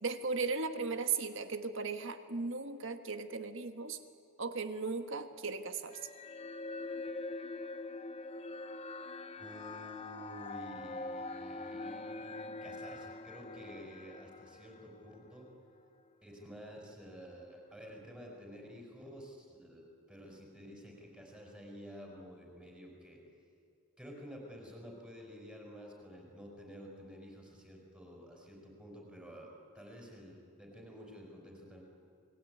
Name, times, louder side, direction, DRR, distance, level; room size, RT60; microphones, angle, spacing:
voice 1, 0.0-4.0 4.4-6.0, right 4 dB, 60° right, 8 dB, 1.6 m, -37 dB
sound 1, 5.9-15.4, left 3 dB, 30° left, 0.8 m, -44 dB
voice 2, 9.3-15.5 16.2-19.8 20.1-23.2 24.0-31.8, equal, 5° right, 0 dB, 5.3 m, -50 dB
28.5 x 20.5 x 9.4 m, 2.3 s
head